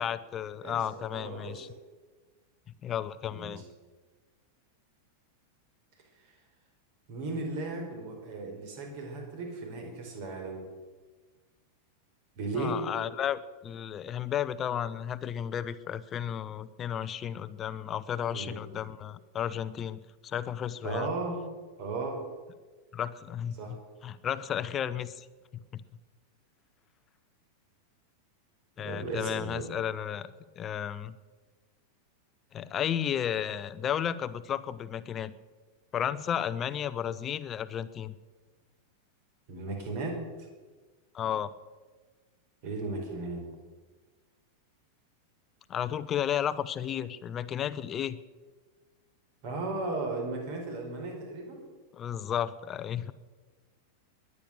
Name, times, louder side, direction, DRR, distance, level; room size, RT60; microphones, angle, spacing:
voice 1, 0.0-1.7 2.8-3.6 12.6-21.1 22.9-23.8 24.0-25.3 25.7-25.8 28.8-31.2 32.5-35.3 35.9-38.1 41.1-41.5 45.7-48.2 51.9-53.1, left 9 dB, 25° left, 15 dB, 0.8 m, -33 dB
voice 2, 0.6-1.6 3.3-3.6 7.1-10.7 12.4-12.8 18.3-18.6 20.8-21.4 21.8-22.2 23.6-23.8 28.8-29.6 39.5-40.2 42.6-43.5 49.4-51.6, right 3 dB, 50° right, 3 dB, 4.5 m, -35 dB
22.0 x 9.9 x 6.5 m, 1.3 s
figure-of-eight pair, 90°, 0 cm